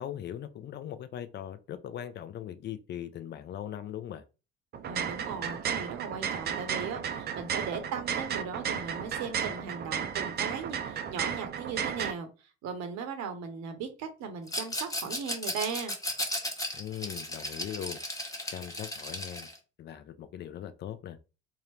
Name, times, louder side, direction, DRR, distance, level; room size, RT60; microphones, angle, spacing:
voice 1, 0.0-4.2 16.7-18.0 18.5-19.5 19.8-21.2, left 10 dB, 35° left, 0.5 m, -40 dB
sound 1, 4.7-12.1, right 7 dB, 30° right, 0.4 m, -34 dB
voice 2, 4.9-15.9, right 6 dB, 55° right, 0.8 m, -38 dB
Rattle, 14.5-19.6, left 1 dB, 10° left, 1.0 m, -35 dB
3.7 x 2.1 x 3.0 m
figure-of-eight pair, 55°, 33 cm